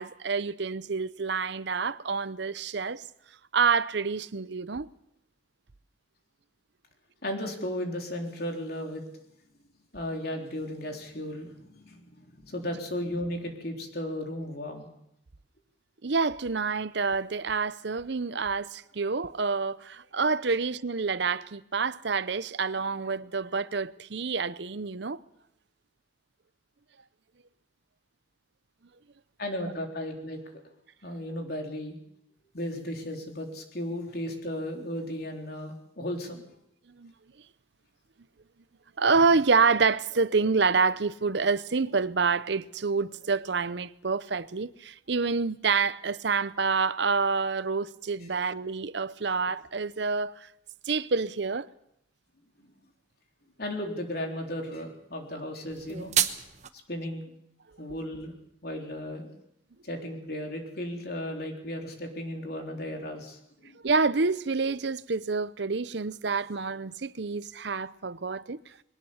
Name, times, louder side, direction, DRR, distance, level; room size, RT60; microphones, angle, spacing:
voice 1, 0.0-3.0 3.5-4.9 16.0-25.2 37.0-37.1 39.0-50.5 50.9-51.7 63.8-68.6, right 4 dB, 60° right, 0.7 m, -27 dB
voice 2, 7.2-9.0 9.9-11.5 11.9-12.1 12.4-14.9 29.4-30.4 31.0-32.0 32.5-36.4 53.6-56.1 56.9-57.2 57.8-58.3 58.6-59.3 59.8-63.8, left 1 dB, 50° left, 3.9 m, -35 dB
sound 1, 55.7-56.7, right 10 dB, 35° right, 1.0 m, -28 dB
22.0 x 18.5 x 7.2 m
head